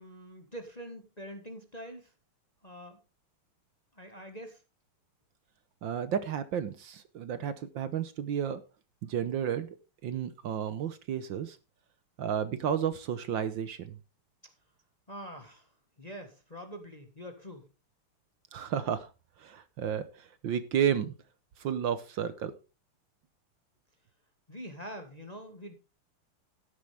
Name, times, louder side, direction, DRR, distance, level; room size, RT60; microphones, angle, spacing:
voice 1, 0.0-2.1 2.6-3.0 3.9-4.6 15.1-15.7 16.0-17.7 24.5-25.8, equal, 20° left, 6 dB, 1.4 m, -44 dB
voice 2, 5.8-8.6 9.0-9.8 10.0-11.6 12.2-14.0 18.5-19.1 19.4-21.1 21.6-22.5, right 8 dB, 65° right, 12 dB, 1.5 m, -32 dB
13.0 x 10.5 x 3.4 m, 0.29 s
omnidirectional pair, 2.4 m